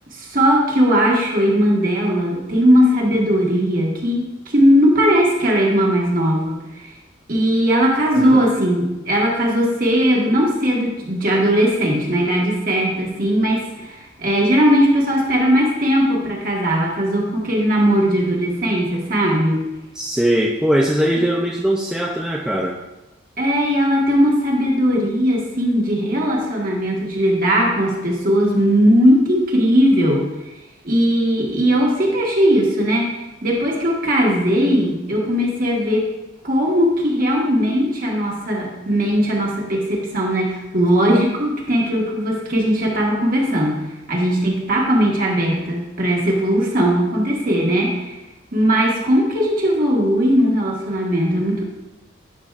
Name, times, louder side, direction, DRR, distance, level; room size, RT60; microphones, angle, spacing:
voice 1, 0.1-6.9 7.3-19.7 21.1-21.2 23.4-30.3 30.8-33.1 33.4-36.1 36.4-48.2 48.5-51.6, equal, 45° right, -2 dB, 1.5 m, -18 dB
voice 2, 8.1-8.5 20.0-22.8, equal, 5° right, -2 dB, 0.4 m, -20 dB
10.5 x 6.0 x 2.5 m, 1.0 s
head